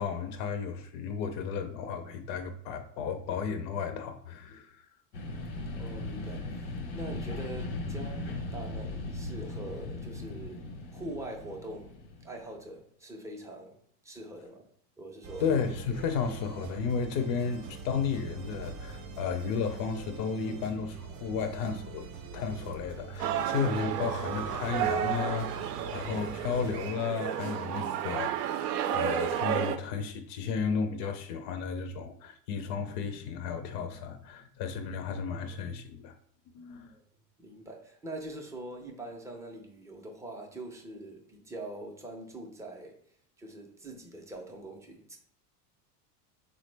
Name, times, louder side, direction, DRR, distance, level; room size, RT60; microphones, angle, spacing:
voice 1, 0.0-4.8 15.4-22.1 22.3-36.1 36.5-36.9, left 6 dB, 50° left, 0.5 m, -33 dB
sound 1, 5.1-12.5, left 2 dB, 80° left, 0.9 m, -38 dB
voice 2, 5.8-10.7 10.9-13.8 14.0-14.7 15.0-15.4 36.9-37.0 37.4-43.0 43.4-45.2, right 1 dB, 5° right, 0.4 m, -43 dB
sound 2, 15.2-26.8, right 4 dB, 40° right, 0.7 m, -43 dB
sound 3, 23.2-29.8, right 10 dB, 80° right, 0.5 m, -32 dB
3.6 x 2.0 x 3.2 m
supercardioid pair, 110°, 46 cm